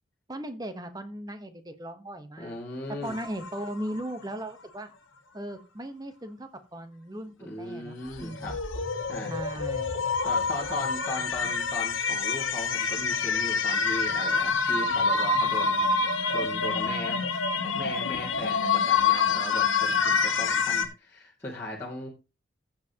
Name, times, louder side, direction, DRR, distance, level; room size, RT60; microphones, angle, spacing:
voice 1, 0.3-2.6 2.9-4.9 5.3-8.6 9.3-9.9 10.7-10.8, right 1 dB, 20° right, 8 dB, 1.1 m, -38 dB
voice 2, 2.4-3.2 7.4-8.5 9.1-9.3 10.2-15.9 16.3-22.1, left 1 dB, 15° left, -7 dB, 2.2 m, -38 dB
sound 1, 3.0-4.1 8.1-20.9, left 5 dB, 80° left, 1.5 m, -27 dB
14.5 x 7.4 x 2.9 m, 0.29 s
head